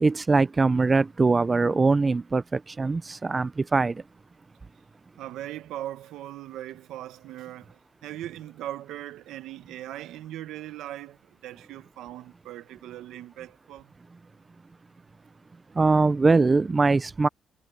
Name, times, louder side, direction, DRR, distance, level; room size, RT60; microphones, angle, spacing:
voice 1, 0.0-4.0 15.8-17.3, right 3 dB, 25° right, 0.5 m, -22 dB
voice 2, 5.1-13.9, right 13 dB, 85° right, 1.0 m, -39 dB
cardioid pair, 90°, 0 cm